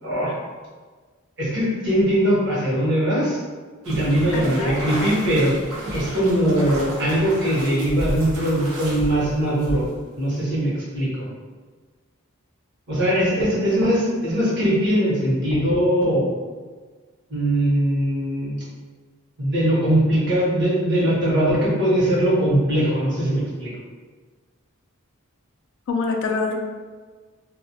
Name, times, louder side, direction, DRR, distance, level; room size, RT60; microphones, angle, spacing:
voice 1, 0.0-0.3 1.4-3.4 3.8-5.5 5.9-9.9 10.2-11.1 12.9-16.3 17.3-18.5 19.4-23.7, right 1 dB, 55° right, -7 dB, 1.0 m, -21 dB
sound 1, 3.8-10.1, right 1 dB, 85° right, 0.7 m, -32 dB
voice 2, 4.3-4.8 25.9-26.6, left 4 dB, 60° left, 2 dB, 0.3 m, -25 dB
2.3 x 2.1 x 2.6 m, 1.4 s
head